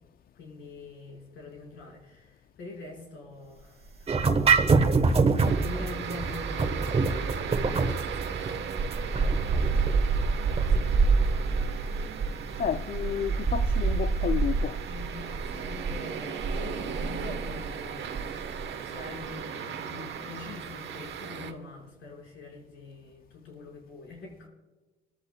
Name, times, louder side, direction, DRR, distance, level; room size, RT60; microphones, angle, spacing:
voice 1, 0.3-4.1 5.3-9.9 10.5-11.6 11.8-12.9 14.9-24.5, left 3 dB, 80° left, 4.7 m, -44 dB
sound 1, 4.1-10.8, right 4 dB, 30° right, 1.1 m, -25 dB
sound 2, 4.1-4.9 5.2-18.7 19.0-19.3, right 4 dB, 50° right, 1.5 m, -28 dB
sound 3, 5.4-21.5, right 7 dB, 65° right, 1.0 m, -37 dB
voice 2, 12.6-14.8, left 8 dB, 50° left, 0.4 m, -31 dB
25.0 x 13.5 x 2.2 m
cardioid pair, 90°, 20 cm